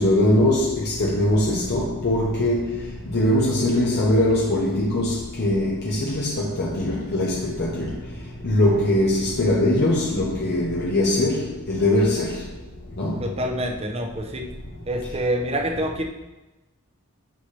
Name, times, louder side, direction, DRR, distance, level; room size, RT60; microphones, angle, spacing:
voice 1, 0.0-2.7 3.1-7.9 8.4-12.3 13.0-13.2, left 1 dB, 50° left, 0.9 m, -21 dB
voice 2, 13.2-14.4 14.8-16.1, right 1 dB, 30° right, 0.8 m, -26 dB
9.1 x 5.7 x 3.3 m
head